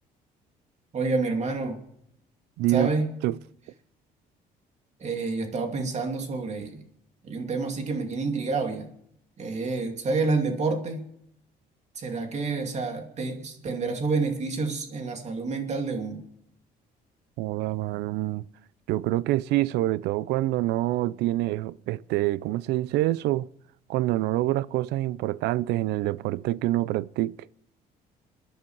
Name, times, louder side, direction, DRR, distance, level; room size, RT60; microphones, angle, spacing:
voice 1, 0.9-1.8 2.7-3.1 5.0-6.8 7.2-8.9 9.4-11.1 12.0-16.2, right 3 dB, 40° right, 2.6 m, -28 dB
voice 2, 2.6-2.9 3.2-3.4 17.4-18.4 18.9-23.5 23.9-27.5, right 16 dB, 85° right, 0.5 m, -26 dB
27.5 x 10.5 x 4.7 m
cardioid pair, 110°, 17 cm